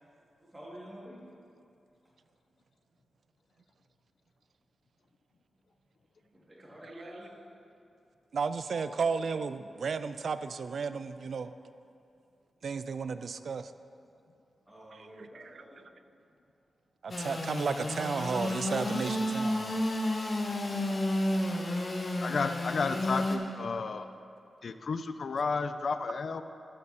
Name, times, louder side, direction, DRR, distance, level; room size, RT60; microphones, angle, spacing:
voice 1, 0.5-1.2 6.3-7.3 8.7-8.8 14.7-15.8, equal, 10° right, -6 dB, 2.4 m, -48 dB
voice 2, 8.3-11.5 12.6-13.7 14.9-15.6 17.0-19.9, right 5 dB, 65° right, 12 dB, 0.3 m, -33 dB
Engine / Sawing, 17.1-23.4, left 1 dB, 35° left, 0.8 m, -31 dB
voice 3, 22.2-24.1 24.6-26.4, left 4 dB, 60° left, 10 dB, 0.3 m, -32 dB
13.0 x 5.4 x 4.2 m, 2.5 s
wide cardioid pair, 100°, 0 cm